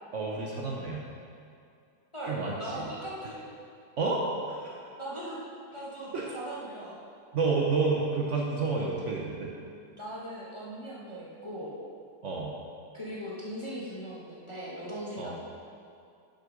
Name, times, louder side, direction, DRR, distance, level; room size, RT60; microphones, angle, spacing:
voice 1, 0.1-1.1 2.3-2.9 4.0-4.8 6.1-6.3 7.3-9.5 12.2-12.5 15.2-15.3, right 3 dB, 55° right, -2 dB, 1.0 m, -30 dB
voice 2, 2.1-3.4 5.0-5.4 5.7-7.0 9.9-11.7 12.9-15.4, right 1 dB, 20° left, -6 dB, 1.0 m, -39 dB
7.2 x 6.2 x 5.1 m, 2.4 s
omnidirectional pair, 1.8 m